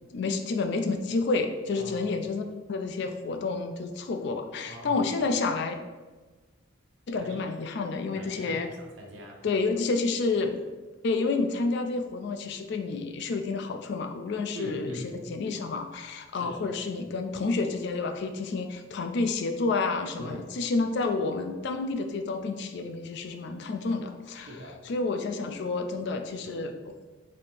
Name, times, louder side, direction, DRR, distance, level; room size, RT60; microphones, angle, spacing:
voice 1, 0.1-2.4 2.7-5.8 7.1-8.7 9.4-10.5 11.0-14.9 15.3-24.5 24.9-26.9, left 3 dB, 55° left, 6 dB, 0.3 m, -29 dB
voice 2, 1.8-2.1 4.7-5.0 7.2-7.5 8.1-9.4 14.5-15.1 16.3-16.6 20.2-20.4 24.4-24.8, equal, 65° right, 0 dB, 0.7 m, -42 dB
4.1 x 2.7 x 3.2 m, 1.3 s
head